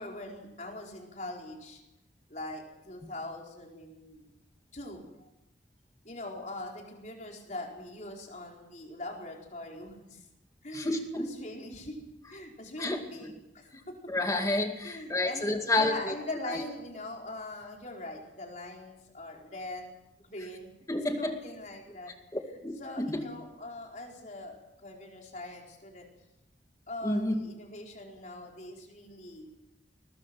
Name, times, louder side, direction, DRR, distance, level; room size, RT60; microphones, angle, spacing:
voice 1, 0.0-1.8 2.3-4.3 4.7-5.3 6.0-10.3 10.6-12.0 12.3-13.9 14.8-19.9 20.2-20.7 21.2-22.1 22.8-26.1 26.9-29.6, left 2 dB, 45° left, 0 dB, 4.6 m, -42 dB
voice 2, 10.7-11.4 12.8-13.0 14.1-16.1 16.5-16.6 20.9-21.4 22.3-23.2 27.0-27.4, left 2 dB, 20° left, 4 dB, 2.3 m, -30 dB
21.5 x 20.5 x 6.2 m, 0.90 s
head